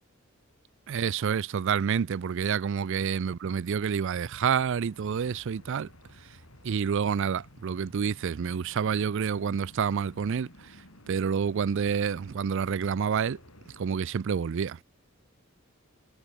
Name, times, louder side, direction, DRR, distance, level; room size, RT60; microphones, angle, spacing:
voice 1, 0.9-5.9 6.2-6.4 6.6-13.4 13.8-14.8, right 7 dB, 65° right, 0.4 m, -28 dB
sound 1, 3.7-14.1, left 1 dB, 85° left, 6.3 m, -54 dB
head